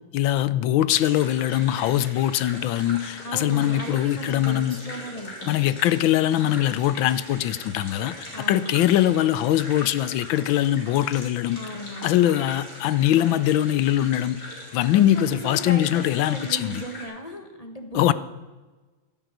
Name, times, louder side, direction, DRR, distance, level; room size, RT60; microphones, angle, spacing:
voice 1, 0.1-4.8 5.5-11.6 12.0-14.4 14.7-16.8 17.9-18.1, left 12 dB, 85° left, 1.4 m, -22 dB
River Flow Loop, 0.9-17.0, left 1 dB, 55° left, 4.1 m, -41 dB
voice 2, 3.2-5.8 8.3-8.9 11.5-12.3 14.9-18.1, equal, 20° left, 1.3 m, -36 dB
11.0 x 10.5 x 9.2 m
omnidirectional pair, 2.1 m